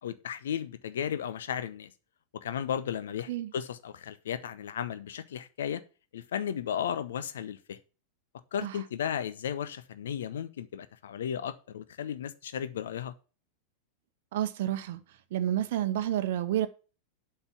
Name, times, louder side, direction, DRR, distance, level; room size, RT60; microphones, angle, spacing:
voice 1, 0.0-1.9 2.3-5.8 6.1-7.8 8.5-13.1, left 9 dB, 60° left, 0.9 m, -35 dB
voice 2, 14.3-15.0 15.3-16.7, right 11 dB, 55° right, 0.8 m, -29 dB
8.1 x 5.7 x 7.2 m
figure-of-eight pair, 90°, 0 cm